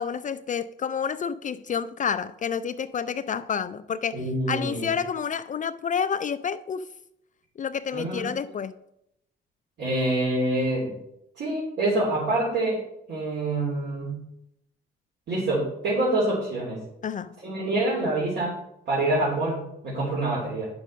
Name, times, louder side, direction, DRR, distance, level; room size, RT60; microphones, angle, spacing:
voice 1, 0.0-4.2 4.5-6.9 7.6-8.7 17.0-17.3, left 7 dB, 40° left, 0.4 m, -29 dB
voice 2, 4.1-4.9 7.9-8.3 9.8-10.9 11.4-12.8 13.1-14.2 15.3-16.8 17.4-18.6 18.9-20.7, right 2 dB, 65° right, 3.4 m, -26 dB
9.4 x 6.2 x 5.5 m
cardioid pair, 90°, 20 cm